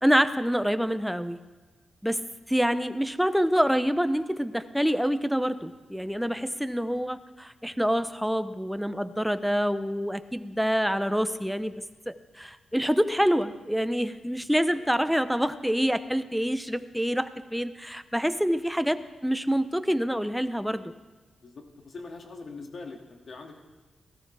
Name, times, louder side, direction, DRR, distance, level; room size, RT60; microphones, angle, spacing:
voice 1, 0.0-1.4 2.0-2.2 2.5-11.7 12.1-20.9, equal, ahead, 11 dB, 0.7 m, -26 dB
voice 2, 21.4-23.6, left 3 dB, 55° left, 2 dB, 2.1 m, -43 dB
17.5 x 14.0 x 3.4 m, 1.3 s
cardioid pair, 90°, 0 cm